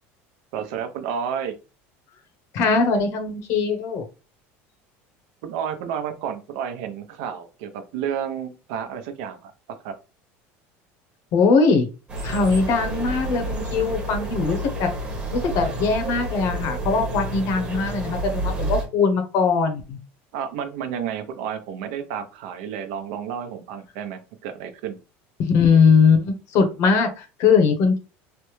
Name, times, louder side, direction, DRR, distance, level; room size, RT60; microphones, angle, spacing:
voice 1, 0.5-1.5 5.4-9.5 9.8-9.9 20.3-25.0, right 8 dB, 75° right, 7 dB, 0.7 m, -31 dB
voice 2, 2.5-4.0 11.3-11.9 12.2-14.9 15.3-20.0 25.4-28.0, left 5 dB, 55° left, 6 dB, 0.9 m, -20 dB
sound 1, 12.1-18.9, right 1 dB, 15° right, 0.9 m, -29 dB
3.3 x 2.1 x 3.1 m, 0.31 s
cardioid pair, 140°, 6 cm